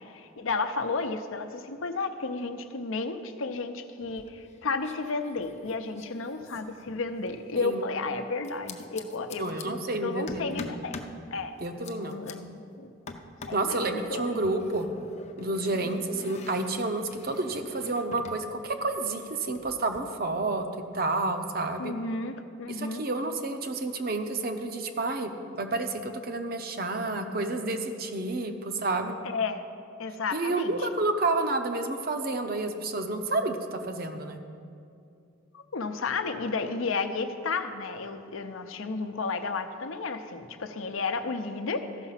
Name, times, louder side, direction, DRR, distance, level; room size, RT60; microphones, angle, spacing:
voice 1, 0.0-11.0 11.3-11.6 12.0-12.9 13.5-14.4 21.8-23.0 29.2-29.6 30.0-30.9 35.5-41.8, left 4 dB, 80° left, 8 dB, 0.7 m, -32 dB
sound 1, 4.0-4.6 4.8-7.4 8.4-9.7 10.3-11.2 11.6-12.3 13.1-13.7 14.4-18.4 18.7-20.0, left 3 dB, 35° left, 0.5 m, -45 dB
voice 2, 9.4-10.7 11.6-12.2 13.5-14.9 15.4-20.7 20.9-21.9 22.7-29.2 30.3-34.4, right 2 dB, 45° right, 7 dB, 0.7 m, -30 dB
14.0 x 5.9 x 5.7 m, 2.5 s
head